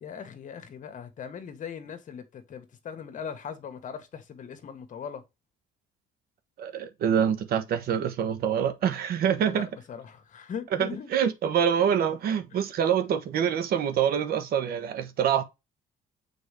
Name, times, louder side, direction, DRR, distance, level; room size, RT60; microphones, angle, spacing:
voice 1, 0.0-5.2 9.4-11.1, left 7 dB, 50° left, 1.5 m, -39 dB
voice 2, 6.6-9.7 10.8-15.4, right 8 dB, 65° right, 1.2 m, -26 dB
6.8 x 4.5 x 3.4 m
cardioid pair, 110°, 17 cm